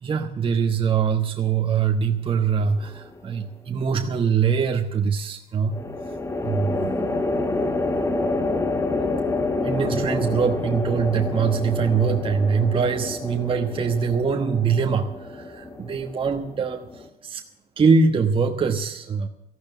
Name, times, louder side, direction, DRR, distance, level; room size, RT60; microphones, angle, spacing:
voice 1, 0.0-5.8 6.4-7.1 9.5-17.4 17.8-19.3, right 6 dB, 30° right, 4 dB, 1.2 m, -23 dB
sound 1, 2.6-3.2 5.7-17.1, left 2 dB, 15° left, 1.5 m, -28 dB
14.5 x 11.5 x 7.0 m, 0.85 s
cardioid pair, 110°, 17 cm